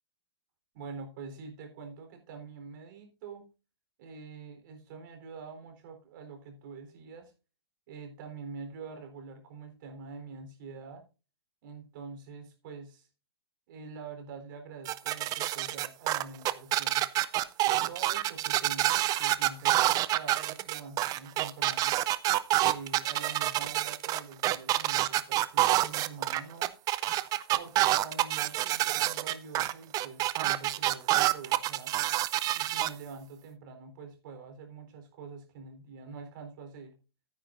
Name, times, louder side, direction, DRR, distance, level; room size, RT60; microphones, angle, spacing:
voice 1, 0.7-3.4 4.0-7.3 7.9-11.0 11.6-13.1 13.7-17.0 17.6-22.0 22.6-26.7 27.5-31.9 32.5-36.9, right 5 dB, 55° right, 6 dB, 3.8 m, -45 dB
sound 1, 14.9-32.9, right 15 dB, 30° right, 0.6 m, -27 dB
13.5 x 9.8 x 2.6 m, 0.31 s
hypercardioid pair, 125°, 13 cm